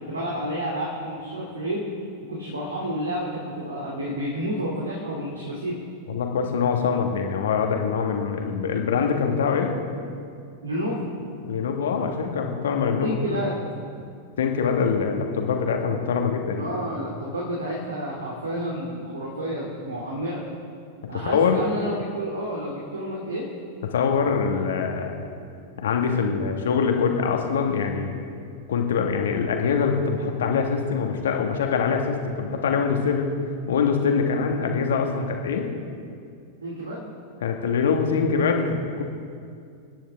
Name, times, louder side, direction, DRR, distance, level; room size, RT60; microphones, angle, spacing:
voice 1, 0.0-1.9 2.2-5.8 10.6-11.1 13.0-13.5 16.5-20.4 21.1-23.5 36.6-37.1, equal, 75° right, -3 dB, 2.7 m, -30 dB
voice 2, 6.1-9.7 11.4-13.2 14.4-16.7 21.2-21.6 23.9-25.3 25.8-28.1 28.7-33.3 33.7-35.7 37.4-39.0, left 6 dB, 60° left, 3 dB, 1.7 m, -24 dB
27.0 x 10.0 x 3.6 m, 2.3 s
figure-of-eight pair, 90°, 0 cm